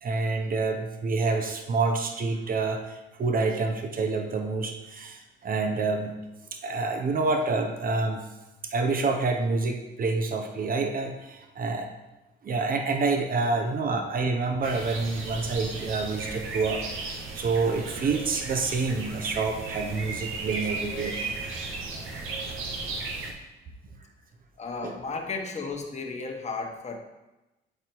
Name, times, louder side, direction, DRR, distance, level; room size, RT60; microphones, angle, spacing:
voice 1, 0.0-6.2 6.5-8.2 8.6-11.9 12.4-21.2 24.8-24.9, right 3 dB, 45° right, 4 dB, 1.0 m, -28 dB
sound 1, 14.6-23.3, right 3 dB, 85° right, 1.2 m, -35 dB
voice 2, 24.6-27.0, left 4 dB, 35° left, 2 dB, 1.3 m, -34 dB
9.0 x 4.2 x 4.6 m, 1.0 s
cardioid pair, 90°, 20 cm